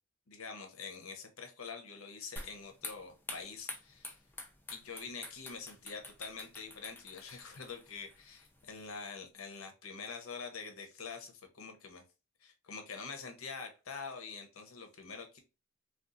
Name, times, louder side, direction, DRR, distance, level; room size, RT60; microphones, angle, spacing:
voice 1, 0.3-4.2 4.7-12.0 12.4-15.4, left 5 dB, 75° left, 5 dB, 0.8 m, -45 dB
sound 1, 2.4-8.9, left 2 dB, 10° left, 0.4 m, -48 dB
3.7 x 2.3 x 2.5 m, 0.30 s
head